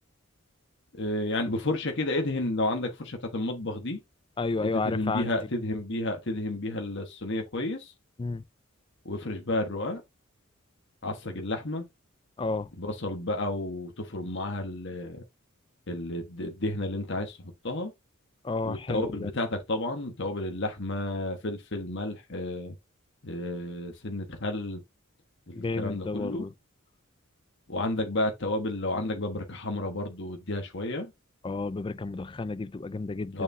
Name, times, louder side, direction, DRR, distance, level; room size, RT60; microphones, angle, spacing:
voice 1, 0.9-4.0 4.6-7.9 9.0-10.0 11.0-11.8 12.7-15.2 15.9-17.9 18.6-22.7 23.2-24.8 25.5-26.5 27.7-31.1 33.3-33.4, left 2 dB, 55° left, 1.4 m, -31 dB
voice 2, 4.4-5.3 8.2-8.4 12.4-12.7 18.4-19.3 25.5-26.5 31.4-33.4, left 3 dB, 25° left, 0.3 m, -31 dB
6.6 x 6.5 x 2.7 m
head